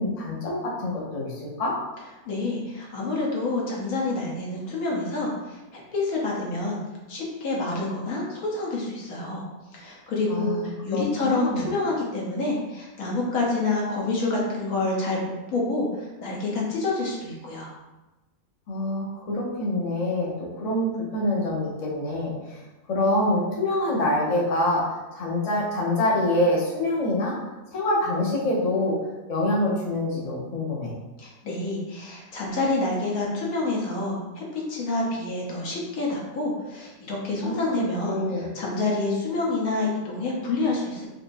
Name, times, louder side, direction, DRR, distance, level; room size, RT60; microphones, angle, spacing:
voice 1, 0.0-1.7 10.3-11.7 18.7-22.6 22.9-27.4 27.7-28.9 29.3-30.9 37.4-38.5, left 1 dB, 35° left, -4 dB, 0.6 m, -26 dB
voice 2, 2.3-6.8 7.1-9.5 9.7-17.7 31.2-41.1, left 2 dB, 75° left, -3 dB, 1.3 m, -28 dB
4.7 x 2.5 x 2.6 m, 1.1 s
omnidirectional pair, 1.5 m